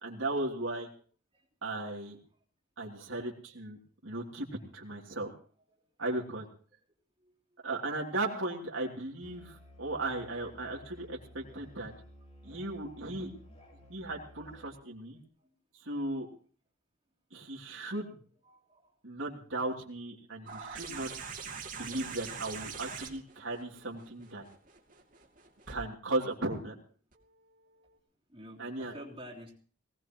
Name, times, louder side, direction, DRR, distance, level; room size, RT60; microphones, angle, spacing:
voice 1, 0.0-0.9 1.6-2.2 2.8-4.5 4.7-5.3 6.0-6.4 7.6-11.9 12.4-13.3 13.9-15.2 15.8-16.3 17.3-18.2 19.0-21.1 21.7-24.4 25.7-26.8 28.6-28.9, right 2 dB, 80° right, -1 dB, 3.0 m, -36 dB
Musical instrument, 9.2-14.8, equal, 30° left, 3.5 m, -55 dB
voice 2, 18.2-19.0 20.6-20.8 28.3-29.6, equal, 25° right, -4 dB, 3.1 m, -51 dB
sound 1, 20.5-25.8 27.1-27.2, right 6 dB, 40° right, 2.7 m, -43 dB
20.5 x 18.0 x 3.1 m, 0.42 s
head